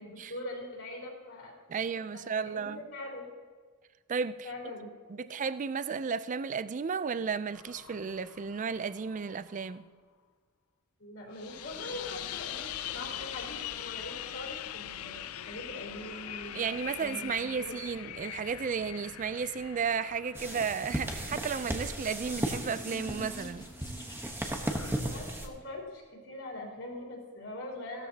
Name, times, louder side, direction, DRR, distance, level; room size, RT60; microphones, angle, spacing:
voice 1, 0.0-1.6 1.8-3.3 4.4-5.3 11.0-17.8 25.0-28.1, left 1 dB, 65° left, 3.5 m, -43 dB
voice 2, 1.7-2.8 4.1-4.5 5.1-9.8 16.5-23.7, right 6 dB, 35° right, 0.3 m, -33 dB
sound 1, 7.5-9.8 11.3-23.0 24.5-25.0, left 11 dB, 80° left, 0.5 m, -43 dB
sound 2, 20.3-25.5, right 1 dB, 10° right, 1.0 m, -35 dB
sound 3, 21.9-24.8, left 1 dB, 20° left, 0.9 m, -48 dB
16.5 x 13.5 x 2.8 m
head